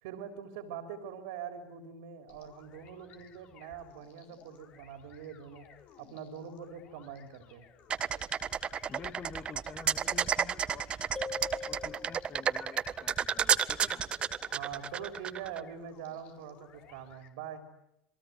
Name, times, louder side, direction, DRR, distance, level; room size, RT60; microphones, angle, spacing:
voice 1, 0.0-5.7 6.0-7.6 14.5-17.6, right 8 dB, 75° right, 6 dB, 3.5 m, -43 dB
sound 1, 2.3-17.3, left 7 dB, 55° left, 4.4 m, -58 dB
sound 2, 7.9-15.6, right 8 dB, 35° right, 1.5 m, -31 dB
voice 2, 8.9-14.1, left 5 dB, 35° left, 8 dB, 2.2 m, -49 dB
sound 3, 11.2-12.6, left 5 dB, 15° left, 1.8 m, -42 dB
28.5 x 21.5 x 9.5 m, 0.84 s
hypercardioid pair, 85°, 3 cm